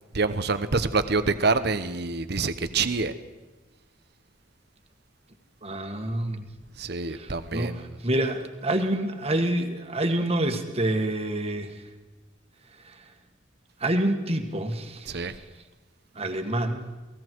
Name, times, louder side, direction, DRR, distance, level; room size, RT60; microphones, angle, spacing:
voice 1, 0.1-3.2 6.8-8.0 15.1-15.4, right 4 dB, 60° right, 11 dB, 1.1 m, -26 dB
voice 2, 5.6-6.5 7.1-11.8 12.8-13.1 13.8-15.3 16.2-16.9, right 1 dB, 35° right, 5 dB, 1.8 m, -27 dB
29.0 x 19.0 x 4.7 m, 1.2 s
head